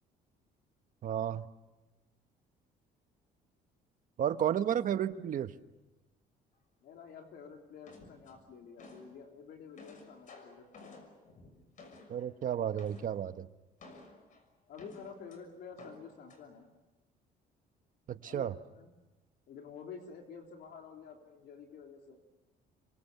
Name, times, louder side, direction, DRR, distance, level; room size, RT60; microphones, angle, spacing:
voice 1, 1.0-1.5 4.2-5.5 12.1-13.5 18.1-18.5, right 10 dB, 55° right, 10 dB, 1.3 m, -32 dB
voice 2, 6.8-11.0 14.7-16.7 18.2-18.9 19.5-22.2, left 6 dB, 70° left, 2 dB, 3.6 m, -50 dB
sound 1, 7.9-9.2 9.5-12.3 12.8-13.2 13.8-15.4 15.8-16.4, left 3 dB, 50° left, 6.4 m, -54 dB
27.5 x 25.0 x 6.9 m, 1.1 s
cardioid pair, 110°, 17 cm